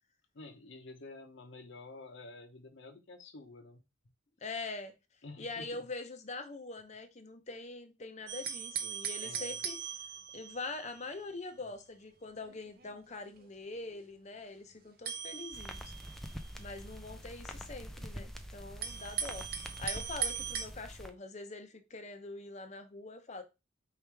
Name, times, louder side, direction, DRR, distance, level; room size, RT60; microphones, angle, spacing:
voice 1, 0.3-3.8 5.2-5.8 9.2-9.6, left 2 dB, 65° left, 0.8 m, -50 dB
voice 2, 4.4-4.9 5.4-9.8 10.3-15.9 16.6-19.5 19.8-23.4, left 3 dB, 35° left, 0.6 m, -43 dB
sound 1, 8.3-11.2 11.6-11.8 12.4-13.5 15.0-17.0 17.7-17.8 18.8-20.6, right 8 dB, 50° right, 0.6 m, -39 dB
sound 2, 15.5-21.1, equal, ahead, 0.4 m, -45 dB
4.7 x 3.1 x 3.3 m
head